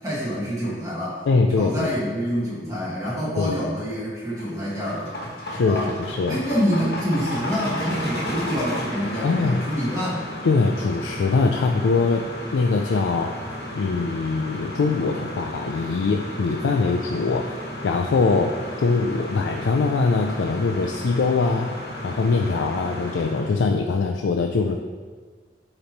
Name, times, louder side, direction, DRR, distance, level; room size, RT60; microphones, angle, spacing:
voice 1, 0.0-1.2 1.6-5.1 5.7-5.9 6.2-10.2, equal, 20° right, -7 dB, 1.6 m, -26 dB
voice 2, 1.3-1.9 3.4-3.5 5.5-6.4 9.2-9.6 10.4-12.3 12.5-13.3 13.7-17.5 17.8-21.8 22.0-24.8, left 4 dB, 85° left, 3 dB, 0.4 m, -22 dB
sound 1, 4.2-23.6, left 1 dB, 55° left, 1.1 m, -33 dB
8.4 x 3.0 x 4.1 m, 1.5 s
head